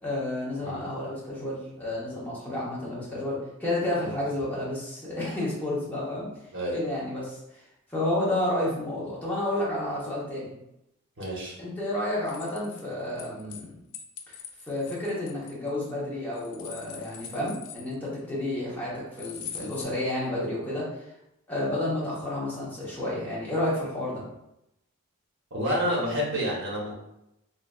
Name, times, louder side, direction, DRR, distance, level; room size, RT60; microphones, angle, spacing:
voice 1, 0.0-6.3 6.7-7.4 7.9-10.5 11.6-13.7 14.3-14.4 14.6-21.1 21.5-24.2, left 1 dB, 5° left, -7 dB, 0.8 m, -30 dB
voice 2, 11.2-11.6 25.5-26.9, equal, 55° right, -4 dB, 1.0 m, -29 dB
sound 1, 12.3-13.6 13.9-15.9 16.3-18.2 19.2-19.9, left 8 dB, 90° left, 0.4 m, -42 dB
3.1 x 2.4 x 2.3 m, 0.85 s
head